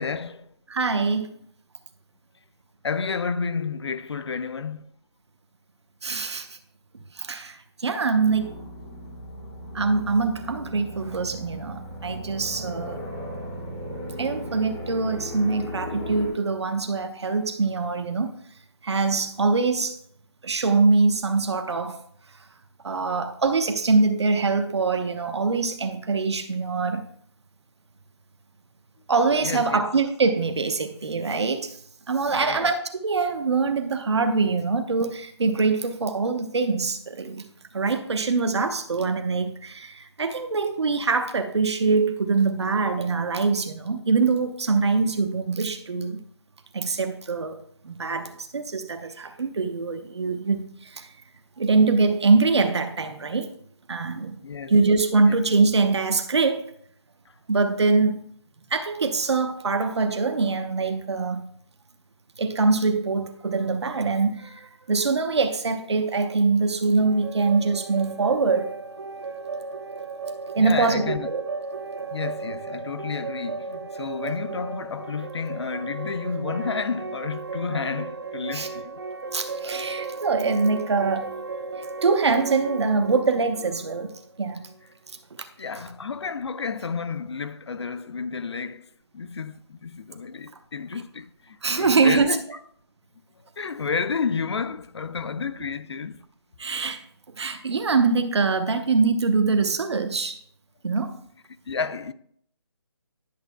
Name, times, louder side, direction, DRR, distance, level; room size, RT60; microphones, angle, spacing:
voice 1, 0.0-0.5 2.8-4.8 29.4-29.8 32.3-32.7 54.4-54.7 55.2-55.4 70.6-71.3 72.1-79.0 82.9-83.0 85.6-92.4 93.6-96.2 101.7-102.1, left 5 dB, 70° left, 0.5 m, -31 dB
voice 2, 0.7-1.3 6.0-6.6 7.1-8.5 9.7-13.0 14.2-18.3 18.8-19.9 20.4-22.0 22.8-27.0 29.1-31.8 32.1-37.4 37.7-46.2 46.7-47.6 47.8-51.1 51.6-53.5 53.9-54.4 54.7-56.6 57.5-58.2 58.7-61.5 62.4-68.7 70.5-71.4 78.5-78.7 79.3-81.3 82.0-84.7 91.6-92.4 96.6-97.0 97.4-100.4 100.8-101.2, right 4 dB, 75° right, 0.9 m, -23 dB
sound 1, 8.2-16.3, equal, 5° left, 0.5 m, -36 dB
sound 2, 67.0-84.8, right 4 dB, 60° right, 0.6 m, -35 dB
10.5 x 7.0 x 2.2 m
hypercardioid pair, 180°, 14 cm